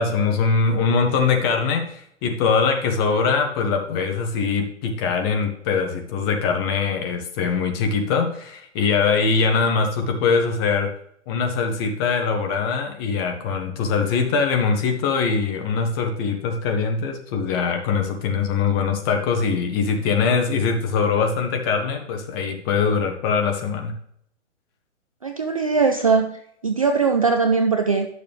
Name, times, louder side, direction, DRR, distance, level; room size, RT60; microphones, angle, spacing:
voice 1, 0.0-10.9 11.3-23.9, left 5 dB, 20° left, 4 dB, 0.9 m, -22 dB
voice 2, 25.2-28.1, right 4 dB, 30° right, 5 dB, 0.4 m, -20 dB
10.5 x 6.7 x 3.4 m, 0.69 s
hypercardioid pair, 160°, 37 cm